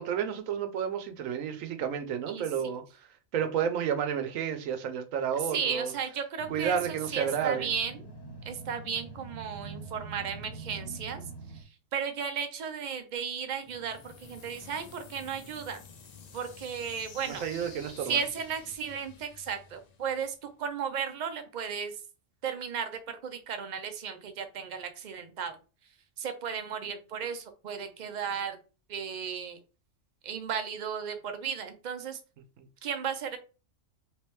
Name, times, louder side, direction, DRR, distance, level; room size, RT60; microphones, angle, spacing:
voice 1, 0.0-2.8 3.3-5.9 6.5-7.7 17.3-18.2 32.6-32.7, right 8 dB, 85° right, 1.0 m, -31 dB
voice 2, 5.5-6.8 7.1-7.9 8.5-11.2 11.5-11.6 11.9-15.8 16.3-17.5 18.1-21.9 22.4-25.6 26.2-28.6 28.9-29.6 30.2-32.2 32.8-33.4, right 7 dB, 55° right, 0.5 m, -34 dB
sound 1, 6.4-11.6, right 3 dB, 20° left, 0.9 m, -44 dB
sound 2, 13.6-20.5, left 5 dB, 55° left, 0.4 m, -50 dB
3.3 x 3.2 x 3.0 m
omnidirectional pair, 1.3 m